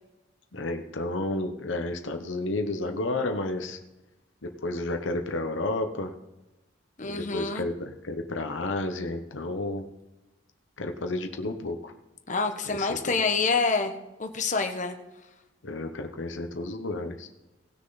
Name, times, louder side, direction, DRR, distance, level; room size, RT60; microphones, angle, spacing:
voice 1, 0.5-3.8 4.6-6.1 7.0-9.9 10.8-11.9 12.7-13.0 15.6-17.3, left 2 dB, 90° left, 5 dB, 1.0 m, -31 dB
voice 2, 7.0-7.7 12.3-13.9 14.2-15.0, left 4 dB, 40° left, 5 dB, 1.2 m, -27 dB
18.5 x 6.6 x 4.0 m, 1.0 s
head